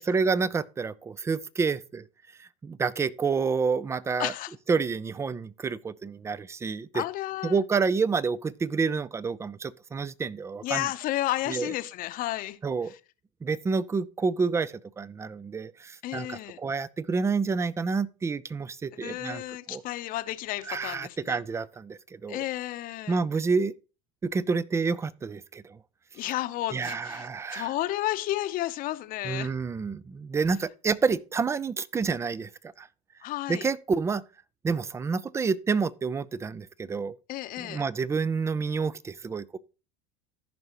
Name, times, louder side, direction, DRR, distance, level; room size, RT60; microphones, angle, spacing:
voice 1, 0.0-2.0 2.4-4.3 4.7-7.0 7.4-10.9 11.5-11.7 12.6-12.9 13.4-19.4 19.7-19.8 20.7-22.4 23.1-23.7 24.2-25.8 26.7-27.7 29.2-32.9 33.5-34.2 34.6-37.2 37.6-39.6, right 5 dB, 15° right, 0.4 m, -29 dB
voice 2, 4.2-4.5 6.9-7.6 10.6-12.6 16.0-16.6 19.0-21.4 22.3-23.2 26.1-29.5 33.2-33.7 37.3-37.8, left 15 dB, 50° left, 0.8 m, -32 dB
14.5 x 5.4 x 3.0 m
supercardioid pair, 105°, 18 cm